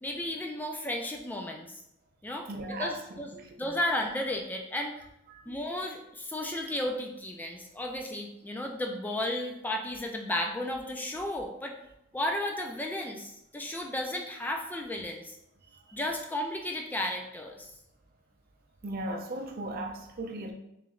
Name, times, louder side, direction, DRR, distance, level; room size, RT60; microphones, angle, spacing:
voice 1, 0.0-1.8 2.2-2.5 2.8-3.3 3.6-4.9 5.5-11.7 12.1-15.4 15.9-17.7, left 1 dB, 10° left, 2 dB, 0.3 m, -33 dB
voice 2, 2.5-3.7 5.3-5.6 15.7-15.8 18.8-20.5, right 1 dB, 50° right, 3 dB, 0.5 m, -37 dB
3.1 x 2.9 x 3.6 m, 0.83 s
head